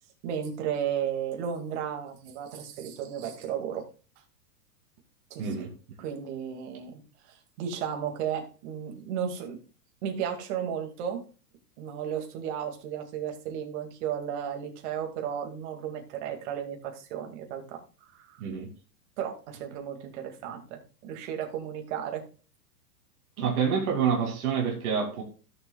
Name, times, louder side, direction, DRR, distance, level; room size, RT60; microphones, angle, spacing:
voice 1, 0.2-3.8 5.3-5.6 6.0-7.0 7.3-9.6 10.0-11.2 11.8-17.8 18.1-18.4 19.2-22.3, right 8 dB, 45° right, 2.3 m, -34 dB
voice 2, 5.4-5.7 18.4-18.7 23.4-25.2, right 6 dB, 60° right, 2.5 m, -27 dB
16.5 x 6.9 x 2.3 m
hypercardioid pair, 145°, 48 cm